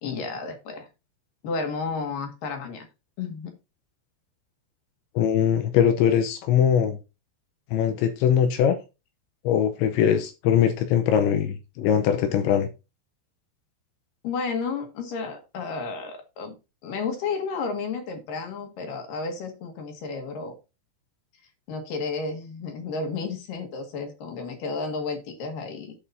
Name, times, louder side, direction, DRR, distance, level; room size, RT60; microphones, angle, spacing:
voice 1, 0.0-0.9 1.4-2.9 3.2-3.5 14.2-16.5 16.8-20.5 21.7-25.9, left 4 dB, 55° left, 2.9 m, -32 dB
voice 2, 5.2-7.0 7.7-8.8 9.4-12.7, left 9 dB, 75° left, 2.9 m, -21 dB
15.5 x 5.3 x 2.7 m
omnidirectional pair, 5.7 m